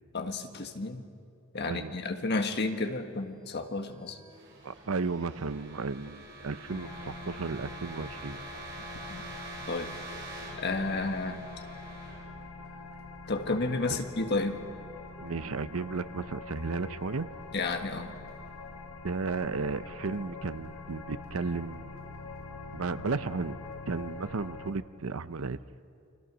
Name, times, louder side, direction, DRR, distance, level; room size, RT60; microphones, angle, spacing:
voice 1, 0.1-1.0 1.5-4.2 9.1-9.2 9.7-9.9 10.6-11.4 13.3-14.6 17.5-18.2, left 3 dB, 50° left, 6 dB, 1.7 m, -31 dB
voice 2, 1.7-2.0 4.6-8.4 15.2-17.3 19.0-22.0 22.7-23.6 23.9-25.6, right 4 dB, 75° right, 14 dB, 0.7 m, -34 dB
sound 1, 3.6-13.4, right 2 dB, 60° right, 6.3 m, -46 dB
sound 2, 6.7-24.7, left 3 dB, 75° left, 1.7 m, -44 dB
29.5 x 23.5 x 6.2 m, 2.5 s
head